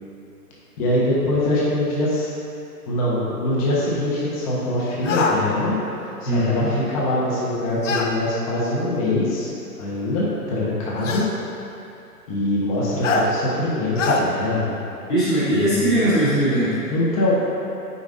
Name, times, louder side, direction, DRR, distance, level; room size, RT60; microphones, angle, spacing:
voice 1, 0.8-2.3 2.9-5.8 6.2-9.5 9.8-11.2 12.3-14.8 15.5-16.0 16.9-17.3, left 1 dB, 20° left, -7 dB, 0.9 m, -23 dB
sound 1, 5.0-5.4 7.8-8.1 9.4-9.5 11.0-11.3 13.0-13.3 14.0-14.2, left 3 dB, 50° left, 0.7 m, -22 dB
voice 2, 6.2-6.7 15.1-16.8, right 1 dB, 5° left, -21 dB, 0.4 m, -20 dB
8.8 x 5.2 x 2.6 m, 2.9 s
hypercardioid pair, 150°, 48 cm